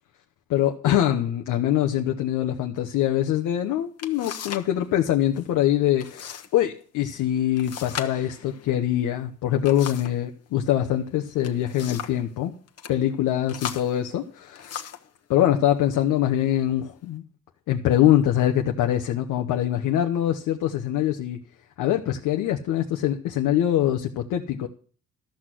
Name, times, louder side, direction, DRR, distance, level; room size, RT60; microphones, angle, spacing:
voice 1, 0.5-12.5 12.9-14.7 15.3-17.2 17.7-21.4 21.8-24.7, left 12 dB, 90° left, 3 dB, 1.0 m, -23 dB
sound 1, 3.5-3.6 4.0-4.7 5.0-5.5 6.0-6.5 6.8-6.9 7.6-10.2 11.2-12.3 12.7-13.0 13.5-15.1 15.9-16.1 16.6-17.1, left 8 dB, 55° left, 1.3 m, -38 dB
13.0 x 6.3 x 7.7 m, 0.42 s
cardioid pair, 90°, 30 cm